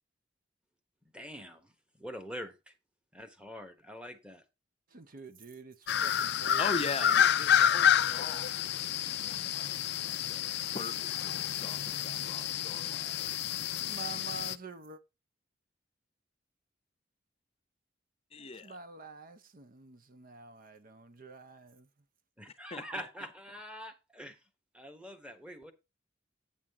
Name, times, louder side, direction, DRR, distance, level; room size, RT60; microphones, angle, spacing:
voice 1, 1.1-1.7 2.0-2.7 3.1-4.4 7.7-7.8 22.4-24.4 24.7-25.7, equal, 5° right, 1.2 m, -44 dB
voice 2, 4.9-7.2 13.6-15.0 18.5-21.9, right 4 dB, 45° right, 0.7 m, -48 dB
sound 1, 5.9-14.6, left 9 dB, 60° left, 0.4 m, -29 dB
voice 3, 6.6-13.7 18.3-18.8 22.7-23.1, left 4 dB, 30° left, 0.7 m, -41 dB
8.7 x 7.5 x 3.6 m
head